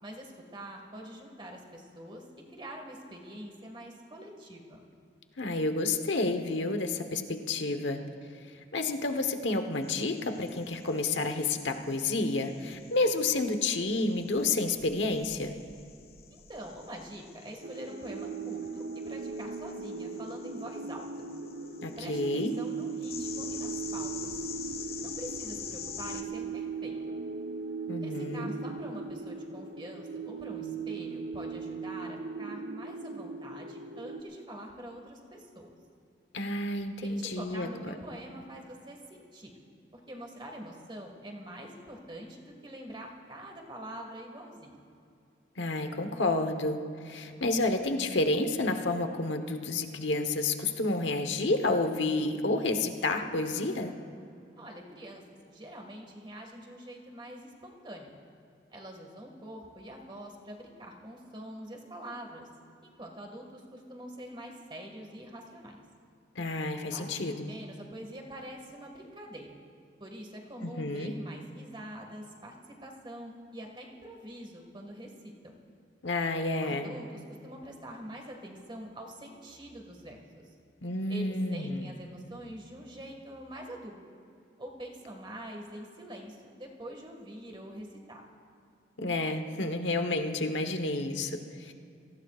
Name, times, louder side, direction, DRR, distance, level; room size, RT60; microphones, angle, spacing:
voice 1, 0.0-4.8 16.3-21.1 22.0-24.3 25.0-27.0 28.0-35.7 37.0-39.5 39.9-44.8 54.6-55.2 55.5-58.1 58.7-62.5 62.8-65.8 66.9-67.2 67.5-69.5 70.0-72.6 72.8-75.5 76.6-80.5 81.1-84.0 84.6-88.2, right 1 dB, 25° right, 1 dB, 1.9 m, -45 dB
voice 2, 5.4-8.0 8.7-15.5 21.8-22.5 27.9-28.5 36.3-38.0 45.6-53.9 66.3-67.5 70.6-71.1 76.0-76.9 80.8-81.9 89.0-91.7, left 2 dB, 85° left, 6 dB, 1.2 m, -30 dB
sound 1, 9.8-26.2, left 7 dB, 55° left, 1.4 m, -46 dB
sound 2, 17.6-34.2, right 4 dB, 85° right, 1.0 m, -38 dB
29.0 x 18.0 x 2.5 m, 2.6 s
head